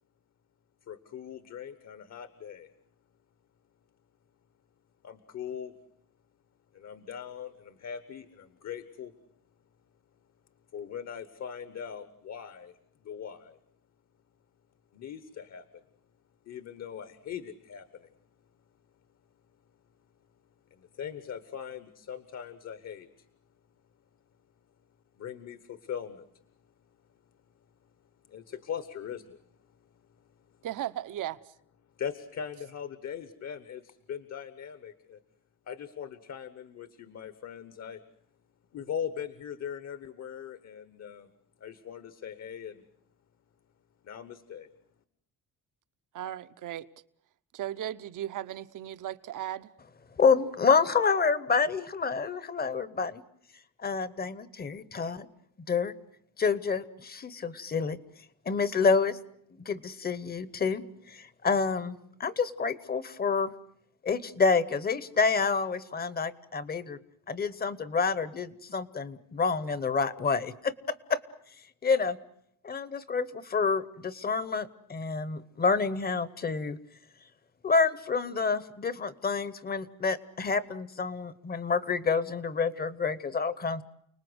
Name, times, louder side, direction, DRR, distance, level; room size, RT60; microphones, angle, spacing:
voice 1, 0.9-2.7 5.0-5.7 6.7-9.1 10.7-13.6 14.9-15.8 16.4-18.1 20.7-23.3 25.2-26.3 28.3-30.7 32.0-35.2 35.7-38.0 38.7-41.3 41.6-42.8 44.0-44.7, left 8 dB, 50° left, 1.1 m, -41 dB
voice 2, 30.6-31.5 46.1-46.9 47.5-49.7, right 12 dB, 65° right, 0.9 m, -36 dB
voice 3, 50.2-53.2 53.8-55.3 55.7-55.9 56.4-58.0 58.5-59.2 59.6-63.5 64.0-67.0 67.3-71.2 71.8-72.2 72.6-76.8 77.6-83.8, left 5 dB, 30° left, 0.9 m, -28 dB
30.0 x 20.0 x 7.9 m
cardioid pair, 180°, 34 cm